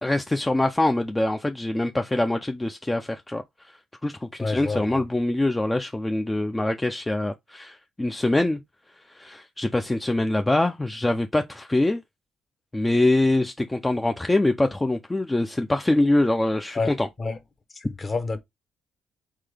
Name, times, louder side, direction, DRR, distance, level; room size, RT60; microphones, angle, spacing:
voice 1, 0.0-3.8 4.0-8.6 9.1-12.0 12.7-17.1, left 2 dB, 15° left, 0.4 m, -24 dB
voice 2, 4.4-5.0 16.7-16.9 17.2-17.4 17.8-18.4, left 3 dB, 35° left, 1.0 m, -28 dB
3.8 x 3.7 x 3.3 m
cardioid pair, 90°, 0 cm